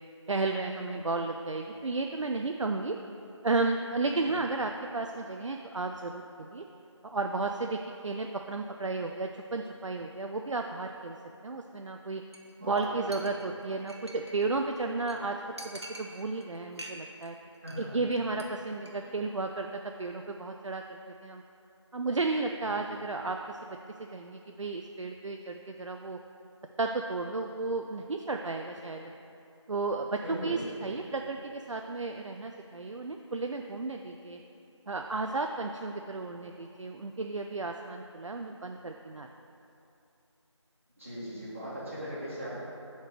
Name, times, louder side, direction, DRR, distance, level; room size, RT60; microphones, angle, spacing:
voice 1, 0.3-2.9 3.4-6.6 7.0-11.2 11.4-12.2 12.6-17.4 17.8-21.4 21.9-23.8 24.1-26.2 26.8-29.1 29.7-34.4 34.9-39.3, right 3 dB, 80° right, 3 dB, 0.4 m, -33 dB
Chink clink, 12.3-12.5 12.8-12.9 13.1-14.4 14.8-14.9 15.1-15.2 15.6-16.4 16.7-17.3 17.5-17.8 18.1-18.4 18.8-18.9, right 1 dB, 60° right, 0.8 m, -45 dB
voice 2, 12.6-13.4 17.6-17.9 22.6-22.9 30.2-31.0 41.0-42.6, equal, 25° right, -10 dB, 1.6 m, -39 dB
5.6 x 4.5 x 6.1 m, 2.8 s
figure-of-eight pair, 175°, 16 cm